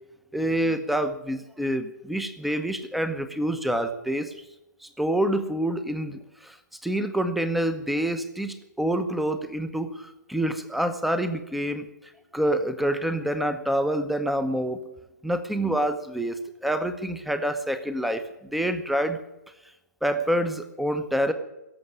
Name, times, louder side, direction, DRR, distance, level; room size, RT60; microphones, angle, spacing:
voice 1, 0.3-4.3 5.0-6.5 6.8-11.8 12.3-14.8 15.2-18.2 18.5-19.2 20.0-21.3, right 1 dB, ahead, 10 dB, 1.0 m, -27 dB
16.5 x 7.6 x 9.7 m, 0.95 s
figure-of-eight pair, 120°, 10 cm